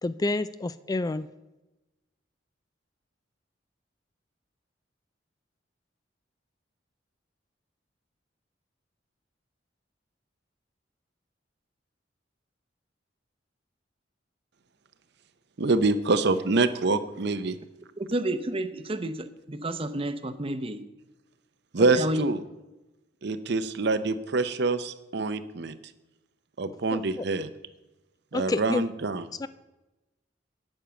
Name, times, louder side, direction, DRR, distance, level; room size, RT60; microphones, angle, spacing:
voice 1, 0.0-1.3 26.9-27.2 28.3-28.8 29.4-29.5, left 2 dB, 20° left, 14 dB, 0.3 m, -29 dB
voice 2, 15.6-17.6 21.7-22.4 23.2-25.7 26.6-27.5 28.3-29.3, right 3 dB, 65° right, 11 dB, 0.7 m, -25 dB
voice 3, 18.0-20.8 21.8-22.2, right 1 dB, 30° right, 10 dB, 0.7 m, -31 dB
8.9 x 8.8 x 7.0 m, 1.0 s
head